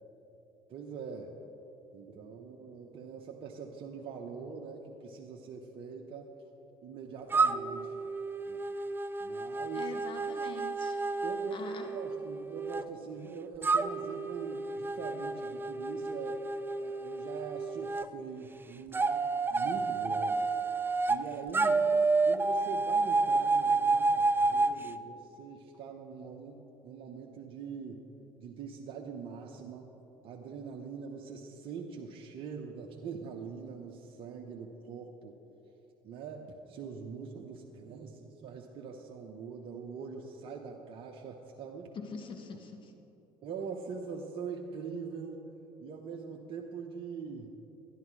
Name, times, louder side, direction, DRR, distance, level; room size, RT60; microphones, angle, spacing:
voice 1, 0.7-1.3 1.9-6.3 6.8-7.9 8.4-8.6 9.2-9.9 11.2-16.4 16.8-20.5 21.1-21.8 22.3-28.0 28.4-29.9 30.2-35.4 36.0-41.9 43.4-45.5 45.8-47.5, right 5 dB, 55° right, 0 dB, 1.0 m, -43 dB
sound 1, 7.3-12.8 13.6-18.1 18.9-21.2 21.5-24.8, right 3 dB, 20° right, 0.5 m, -30 dB
voice 2, 9.7-11.0 11.5-11.9 41.9-42.9, left 5 dB, 45° left, 4 dB, 1.5 m, -44 dB
11.5 x 11.0 x 4.8 m, 2.9 s
hypercardioid pair, 70°, 12 cm